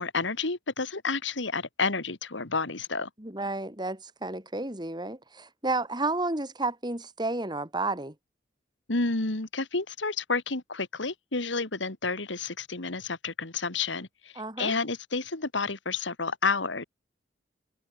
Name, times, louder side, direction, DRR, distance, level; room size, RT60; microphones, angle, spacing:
voice 1, 0.0-3.1 8.9-16.8, left 4 dB, 90° left, 2.4 m, -30 dB
voice 2, 3.2-8.1 14.4-14.7, right 2 dB, 25° right, 4.8 m, -31 dB
head